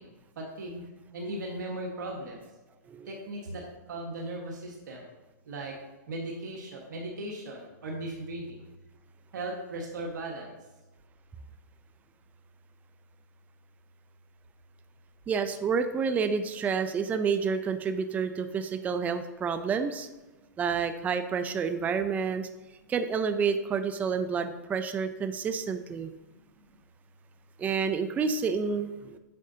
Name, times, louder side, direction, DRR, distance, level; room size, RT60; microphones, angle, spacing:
voice 1, 0.0-2.4 3.0-5.1 5.5-5.8 6.1-8.6 9.3-10.6 26.7-26.8, right 1 dB, 80° right, -1 dB, 1.4 m, -38 dB
voice 2, 15.3-20.1 20.6-22.5 22.9-26.1 27.6-29.2, right 6 dB, 15° right, 9 dB, 0.4 m, -29 dB
8.5 x 6.4 x 2.7 m, 1.2 s
hypercardioid pair, 130°, 10 cm